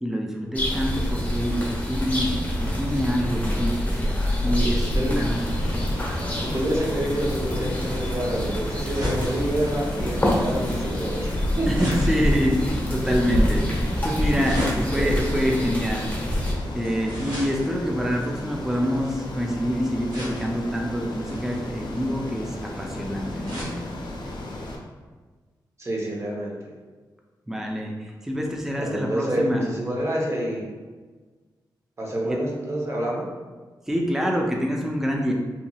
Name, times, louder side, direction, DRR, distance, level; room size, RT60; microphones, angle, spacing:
voice 1, 0.0-5.7 11.7-16.1 16.4-23.7 27.5-29.7 32.2-32.4 33.9-35.3, equal, 5° right, 1 dB, 0.4 m, -26 dB
sound 1, 0.5-16.5, equal, 20° left, 0.7 m, -26 dB
Ocean, 5.1-24.8, left 1 dB, 70° left, 0.4 m, -35 dB
voice 2, 6.4-11.7 14.9-15.7 25.8-26.6 28.8-30.6 32.0-33.3, right 1 dB, 35° right, -3 dB, 0.8 m, -28 dB
sound 2, 7.9-19.4 20.1-20.7 21.2-23.8 24.2-24.3 24.6-24.7, equal, 65° right, 1.2 m, -36 dB
2.9 x 2.7 x 2.3 m, 1.4 s
cardioid pair, 70°, 8 cm